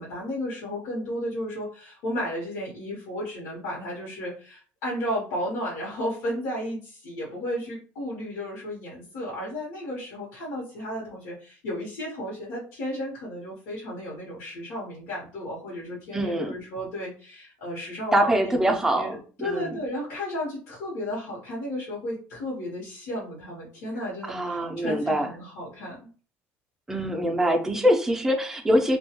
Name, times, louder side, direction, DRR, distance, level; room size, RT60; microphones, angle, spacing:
voice 1, 0.0-26.0, equal, 80° left, -4 dB, 0.9 m, -33 dB
voice 2, 16.1-16.6 18.1-19.8 24.2-25.3 26.9-29.0, equal, 10° right, 3 dB, 0.4 m, -24 dB
2.2 x 2.2 x 2.8 m, 0.40 s
cardioid pair, 145°, 5 cm